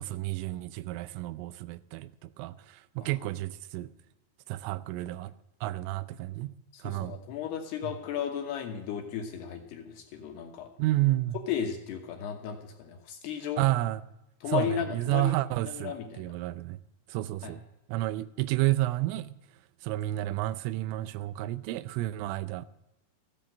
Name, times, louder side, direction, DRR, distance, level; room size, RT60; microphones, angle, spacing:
voice 1, 0.0-3.9 4.5-5.3 5.6-6.5 6.8-7.2 10.8-11.4 13.6-14.0 14.5-16.8 17.1-17.6 17.9-19.4 19.8-22.7, right 16 dB, 85° right, 3.2 m, -31 dB
voice 2, 6.7-10.7 11.5-13.7 14.4-15.3 15.7-16.2 17.4-17.5, left 9 dB, 70° left, 2.8 m, -34 dB
14.5 x 10.0 x 7.4 m
omnidirectional pair, 5.7 m